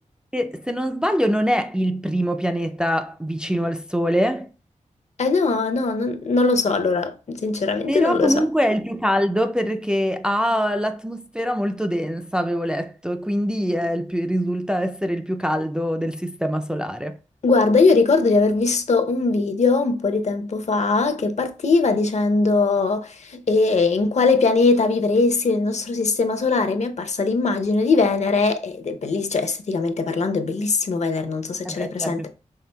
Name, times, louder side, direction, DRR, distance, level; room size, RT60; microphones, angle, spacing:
voice 1, 0.3-4.5 7.9-17.2 31.6-32.3, equal, 5° right, 0.3 m, -24 dB
voice 2, 5.2-8.4 17.4-32.3, left 3 dB, 60° left, 0.6 m, -20 dB
5.6 x 3.6 x 2.2 m
wide cardioid pair, 85°, 13 cm